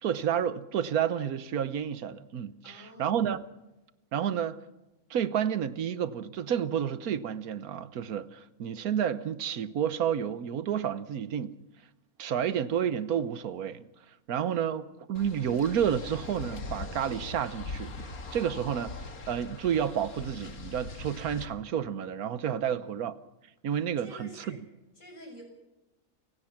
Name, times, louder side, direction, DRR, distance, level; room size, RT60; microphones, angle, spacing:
voice 1, 0.0-3.4 4.1-4.6 5.1-11.5 12.2-13.8 14.3-19.0 19.3-23.1 23.6-24.6, right 9 dB, 90° right, 1.4 m, -30 dB
voice 2, 2.6-3.4 22.6-23.0 24.0-24.6 25.0-25.4, equal, 60° left, 7.1 m, -49 dB
sound 1, 15.1-21.5, left 3 dB, 90° left, 2.3 m, -41 dB
28.5 x 17.0 x 5.9 m
omnidirectional pair, 1.5 m